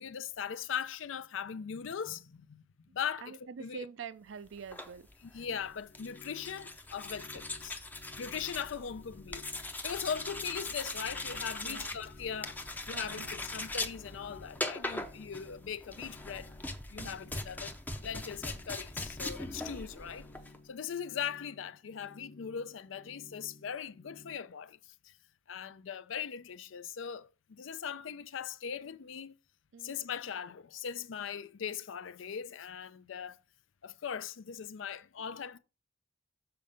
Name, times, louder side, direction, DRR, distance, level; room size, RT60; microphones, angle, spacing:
voice 1, 0.0-2.6 2.9-3.9 5.2-7.8 8.2-16.5 16.9-20.3 20.6-25.1 25.5-29.3 29.8-33.4 33.8-35.6, left 7 dB, 80° left, 0.5 m, -40 dB
voice 2, 3.2-5.1 11.6-12.0 12.9-13.3 17.0-17.2 29.7-30.0, right 5 dB, 70° right, 0.4 m, -45 dB
sound 1, 4.6-20.6, left 2 dB, 10° left, 0.5 m, -41 dB
sound 2, 5.5-24.4, left 3 dB, 50° left, 0.9 m, -57 dB
6.9 x 4.3 x 5.0 m
head